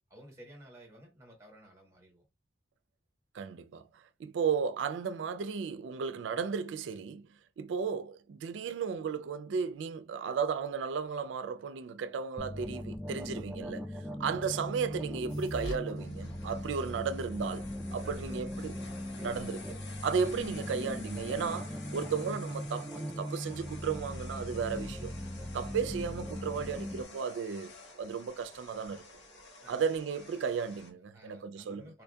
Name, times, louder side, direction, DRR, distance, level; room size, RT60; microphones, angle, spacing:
voice 1, 0.0-2.2 18.0-18.6 19.1-19.7 29.6-29.8 31.1-32.0, right 1 dB, 15° right, 1.3 m, -54 dB
voice 2, 3.3-7.3 7.6-13.9 14.2-18.7 19.2-19.6 20.0-25.1 25.5-29.1 29.7-31.9, right 6 dB, 90° right, 0.3 m, -34 dB
sound 1, 12.4-27.0, equal, ahead, 0.4 m, -39 dB
sound 2, 15.3-15.8 16.3-16.4 17.1-17.2 17.5-17.6 17.9-21.6, equal, 70° left, 1.8 m, -47 dB
sound 3, 15.9-30.9, left 3 dB, 85° left, 1.0 m, -51 dB
4.1 x 2.6 x 2.2 m
head